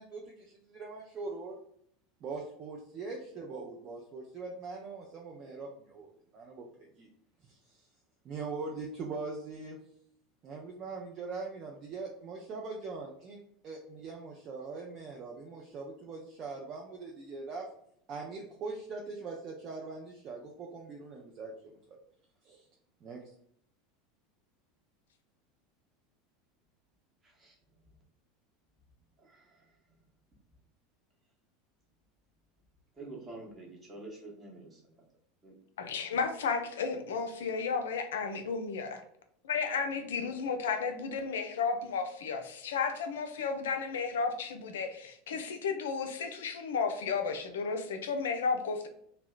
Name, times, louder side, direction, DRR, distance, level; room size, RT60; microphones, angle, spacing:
voice 1, 0.0-1.6 2.2-7.1 7.4-7.9 8.2-9.8 10.4-17.6 18.1-22.0 22.4-22.6 23.0-23.2, right 4 dB, 35° right, 0 dB, 0.4 m, -42 dB
voice 2, 27.2-27.6 29.2-29.7 33.0-34.9 35.4-35.5, right 2 dB, 20° right, -2 dB, 0.8 m, -48 dB
voice 3, 35.8-39.0 39.4-48.9, left 5 dB, 65° left, 7 dB, 0.3 m, -33 dB
2.7 x 2.0 x 2.3 m, 0.67 s
figure-of-eight pair, 75°, 0 cm